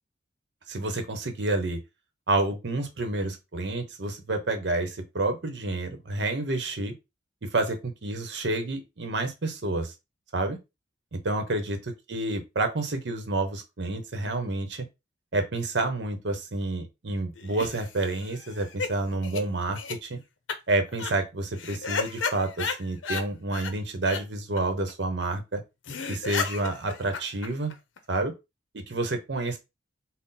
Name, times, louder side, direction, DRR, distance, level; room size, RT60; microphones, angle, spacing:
voice 1, 0.7-1.8 2.3-6.9 7.4-9.9 10.3-10.6 11.1-14.9 15.3-20.2 20.7-25.6 26.1-27.7 28.1-28.3 28.7-29.6, right 2 dB, 65° right, 6 dB, 0.8 m, -29 dB
sound 1, 17.3-18.9 19.2-19.4 19.7-19.9 20.5-20.6 20.9-21.1 21.6-23.2 23.5-23.7 24.0-24.2 24.6-24.7 24.9-25.0 25.2-25.3 25.6-25.7 25.8-28.0, left 5 dB, 85° left, 0.6 m, -33 dB
3.8 x 2.0 x 4.0 m, 0.23 s
head